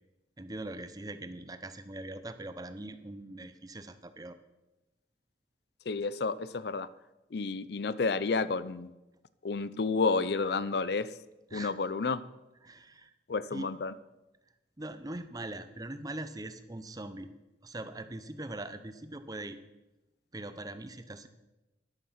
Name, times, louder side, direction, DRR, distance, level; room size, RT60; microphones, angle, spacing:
voice 1, 0.4-4.4 11.5-11.7 12.6-13.1 13.5-13.7 14.8-17.3 17.6-19.6 20.3-21.3, right 2 dB, 20° right, 11 dB, 0.7 m, -41 dB
voice 2, 5.9-6.9 7.3-8.9 9.4-11.1 11.5-12.3 13.3-13.9, left 4 dB, 55° left, 16 dB, 0.5 m, -30 dB
12.5 x 11.0 x 5.7 m, 1.0 s
head